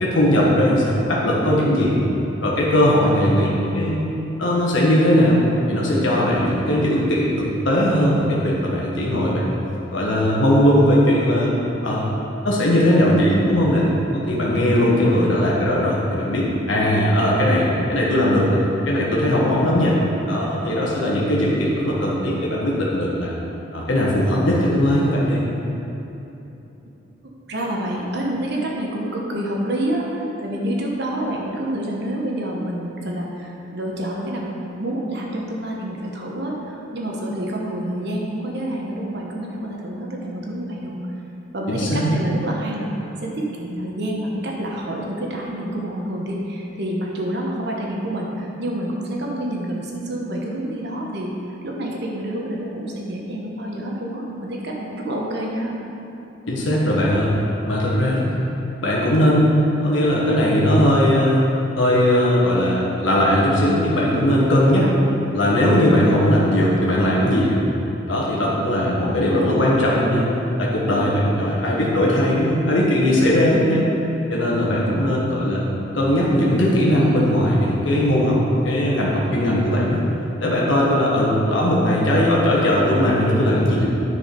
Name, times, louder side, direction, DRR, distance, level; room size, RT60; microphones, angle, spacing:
voice 1, 0.0-2.0 2.4-4.0 4.4-5.4 5.7-9.6 9.9-12.1 12.4-13.9 14.1-18.6 18.8-20.0 20.3-23.3 23.7-25.4 41.7-42.2 56.5-57.4 57.7-58.4 58.8-61.4 61.8-64.9 65.3-67.6 68.1-70.2 70.6-73.8 74.3-75.6 75.9-78.4 78.6-80.0 80.4-83.9, equal, 85° left, -5 dB, 1.4 m, -19 dB
voice 2, 3.2-3.6 14.8-15.4 27.5-30.1 30.4-41.0 41.5-42.9 43.2-55.8 64.8-64.9 69.0-69.7 74.7-75.2, right 1 dB, 60° right, -2 dB, 1.1 m, -28 dB
10.0 x 4.8 x 5.3 m, 3.0 s
head